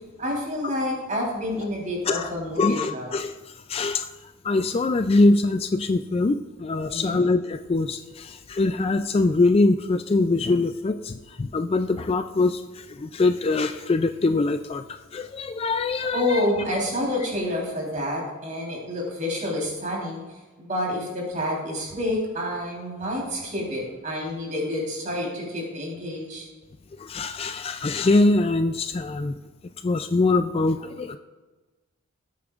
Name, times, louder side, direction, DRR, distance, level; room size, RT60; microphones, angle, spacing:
voice 1, 0.2-3.1 6.9-7.2 16.1-20.2 20.6-26.5, left 1 dB, 35° right, -2 dB, 3.7 m, -28 dB
voice 2, 2.6-4.1 4.4-16.4 27.0-29.4 29.8-31.2, left 3 dB, 25° left, 9 dB, 0.3 m, -23 dB
19.0 x 8.5 x 2.5 m, 1.2 s
head